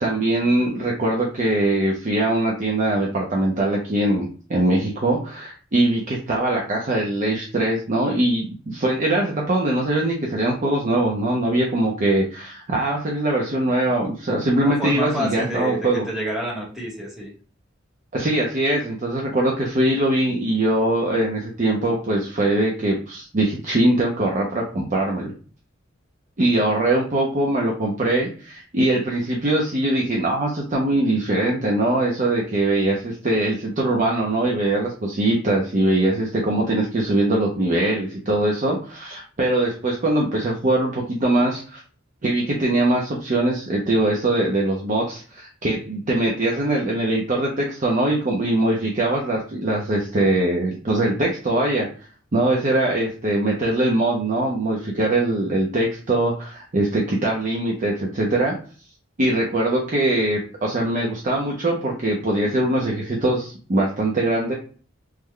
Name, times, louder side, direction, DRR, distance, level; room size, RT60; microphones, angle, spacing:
voice 1, 0.0-16.0 18.1-25.3 26.4-41.8 42.2-51.9 52.3-58.6 59.2-64.5, right 1 dB, 40° right, -1 dB, 0.6 m, -22 dB
voice 2, 14.6-17.3, equal, ahead, -4 dB, 1.1 m, -28 dB
3.1 x 2.2 x 3.6 m, 0.40 s
head